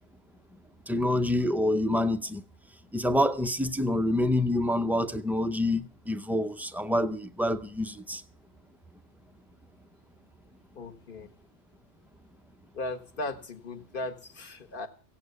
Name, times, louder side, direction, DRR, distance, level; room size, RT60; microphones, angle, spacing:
voice 1, 0.9-2.4 2.9-8.2, left 1 dB, 5° right, 0.3 m, -27 dB
voice 2, 10.7-11.3 12.7-14.9, left 2 dB, 45° left, 1.7 m, -37 dB
16.5 x 8.6 x 8.0 m
omnidirectional pair, 1.2 m